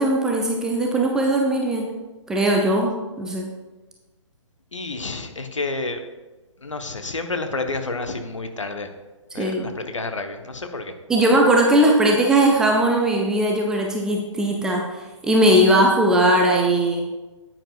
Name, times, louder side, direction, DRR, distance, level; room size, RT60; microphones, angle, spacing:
voice 1, 0.0-1.9 2.3-3.5 9.4-9.7 11.1-17.0, right 1 dB, 5° right, 0 dB, 0.4 m, -19 dB
voice 2, 4.7-6.0 6.6-8.9 9.3-10.9, left 3 dB, 70° left, 6 dB, 1.0 m, -29 dB
9.3 x 8.9 x 2.4 m, 1.2 s
figure-of-eight pair, 130°, 16 cm